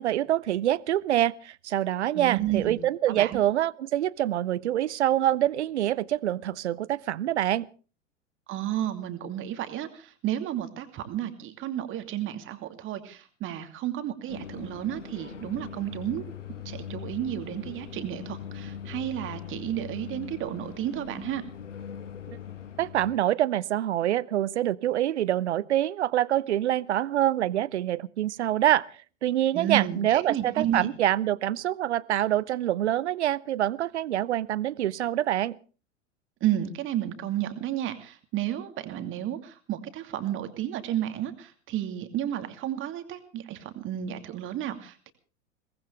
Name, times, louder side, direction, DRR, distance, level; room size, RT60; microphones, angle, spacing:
voice 1, 0.0-7.7 22.8-28.8 29.2-35.6, right 12 dB, 65° right, 23 dB, 0.8 m, -25 dB
voice 2, 2.1-2.8 3.1-3.4 8.5-16.2 16.5-21.4 29.5-30.9 36.4-45.1, right 12 dB, 35° right, 8 dB, 2.6 m, -32 dB
sound 1, 14.3-23.1, left 8 dB, 75° left, 1.4 m, -41 dB
23.0 x 18.5 x 3.4 m, 0.37 s
figure-of-eight pair, 90°, 37 cm